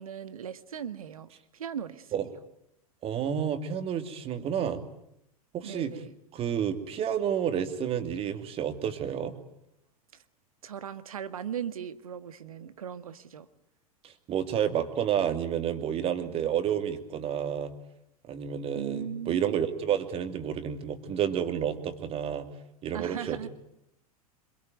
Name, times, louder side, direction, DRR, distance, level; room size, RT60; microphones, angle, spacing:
voice 1, 0.0-2.3 5.6-6.1 10.1-10.2 10.6-13.5 18.7-19.6 22.9-23.5, right 9 dB, 65° right, 12 dB, 1.6 m, -38 dB
voice 2, 3.0-4.8 5.5-5.9 6.3-9.3 14.0-17.7 18.3-22.5 22.8-23.5, right 9 dB, 30° right, 9 dB, 2.7 m, -30 dB
26.5 x 23.0 x 9.4 m, 0.78 s
figure-of-eight pair, 90°, 19 cm